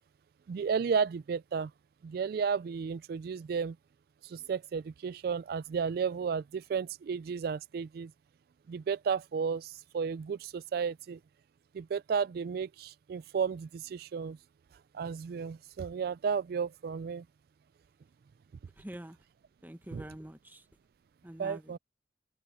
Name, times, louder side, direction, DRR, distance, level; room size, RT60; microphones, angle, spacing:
voice 1, 0.5-1.7 2.0-3.8 4.2-8.1 8.7-11.2 11.7-14.4 14.9-17.2 19.9-20.0 21.4-21.8, right 6 dB, 55° right, 0.3 m, -33 dB
voice 2, 18.8-19.2 19.6-20.6 21.2-21.8, right 1 dB, 10° right, 1.1 m, -45 dB
open air
head